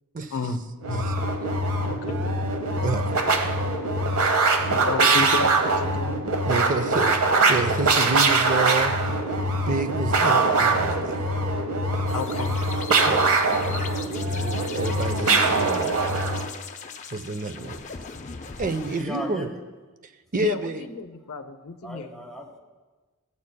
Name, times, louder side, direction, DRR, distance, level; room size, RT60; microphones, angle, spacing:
voice 1, 0.3-0.6 0.9-1.1 1.8-2.2 4.5-6.3 6.7-6.9 12.1-12.5 20.4-22.1, left 4 dB, 80° left, 9 dB, 0.6 m, -31 dB
sound 1, 0.8-16.5, right 3 dB, 80° right, 0.9 m, -23 dB
voice 2, 6.5-7.2 7.5-9.0 9.6-11.2 12.9-13.3 14.3-15.9 17.1-17.8 18.6-19.5 20.0-20.8, right 3 dB, 40° right, 9 dB, 0.5 m, -29 dB
sound 2, 12.1-19.0, left 5 dB, 35° left, 0.5 m, -39 dB
voice 3, 18.9-19.6 21.2-21.3 21.8-22.6, equal, ahead, -1 dB, 1.3 m, -36 dB
14.5 x 8.5 x 2.2 m, 1.3 s
head